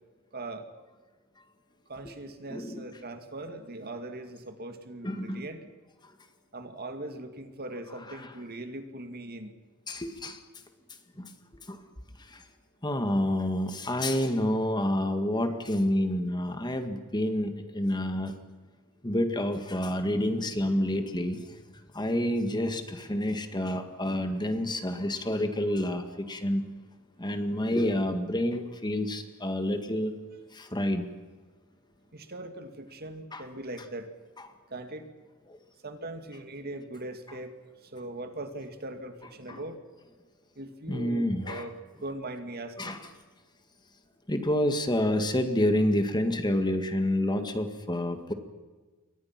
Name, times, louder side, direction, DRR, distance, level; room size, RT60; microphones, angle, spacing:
voice 1, 0.3-0.7 1.9-5.7 6.5-9.5 32.1-34.1 34.7-35.1 35.8-37.5 37.8-39.8 40.6-43.0, right 2 dB, 45° right, 7 dB, 2.3 m, -40 dB
voice 2, 2.5-2.8 5.0-5.4 8.2-8.3 9.9-10.4 11.2-11.3 11.7-11.8 12.3-12.4 12.8-18.3 19.0-21.4 21.9-26.6 27.2-30.2 30.5-31.1 33.3-33.4 35.5-35.6 39.5-39.6 40.9-41.7 42.8-43.0 44.3-48.3, left 1 dB, 20° left, 7 dB, 1.8 m, -28 dB
29.0 x 23.0 x 6.0 m, 1.3 s
head